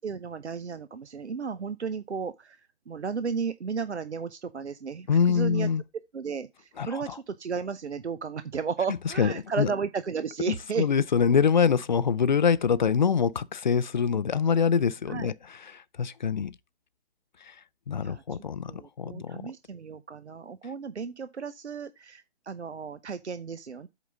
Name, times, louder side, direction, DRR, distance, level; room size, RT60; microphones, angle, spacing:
voice 1, 0.0-5.7 6.1-10.9 15.1-15.3 18.0-18.2 18.7-23.9, right 5 dB, 85° right, 0.6 m, -34 dB
voice 2, 5.1-5.8 6.8-7.1 9.2-9.7 10.8-15.3 15.7-16.5 17.5-17.6 17.9-18.7 19.0-19.4, left 6 dB, 45° left, 0.4 m, -24 dB
8.1 x 3.9 x 5.2 m
figure-of-eight pair, 140°, 33 cm